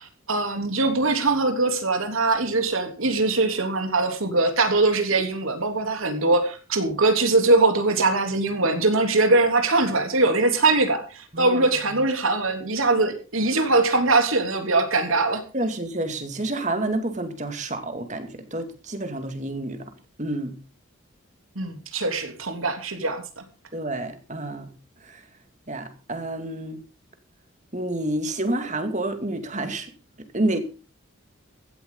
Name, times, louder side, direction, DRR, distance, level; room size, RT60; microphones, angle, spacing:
voice 1, 0.0-15.4 21.5-23.2, right 3 dB, 80° right, 3.2 m, -22 dB
voice 2, 15.5-19.9 20.2-20.5 23.7-24.7 25.0-25.2 25.7-26.8 27.7-29.9 30.3-30.6, right 1 dB, 35° right, 2.3 m, -29 dB
16.0 x 13.0 x 3.9 m
head